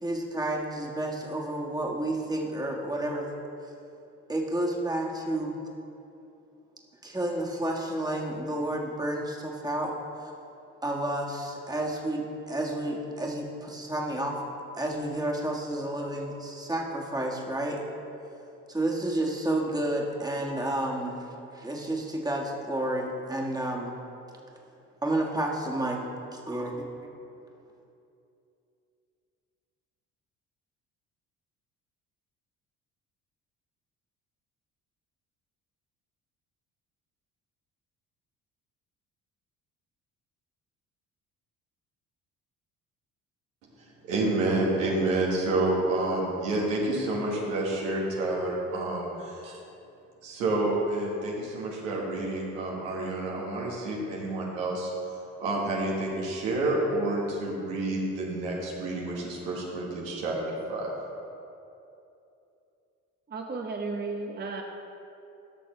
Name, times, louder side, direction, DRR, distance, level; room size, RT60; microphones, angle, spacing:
voice 1, 0.0-3.3 4.3-5.6 7.0-10.3 10.8-14.4 14.7-17.8 18.7-21.2 21.5-24.0 25.0-26.0 26.3-27.1, right 1 dB, 10° right, -2 dB, 1.7 m, -30 dB
voice 2, 43.8-49.6 50.2-54.9 55.4-60.4 60.7-60.9, right 2 dB, 85° right, -3 dB, 1.7 m, -29 dB
voice 3, 63.3-64.6, right 3 dB, 25° right, 1 dB, 0.9 m, -34 dB
14.0 x 6.4 x 3.3 m, 2.7 s
hypercardioid pair, 55°, 39 cm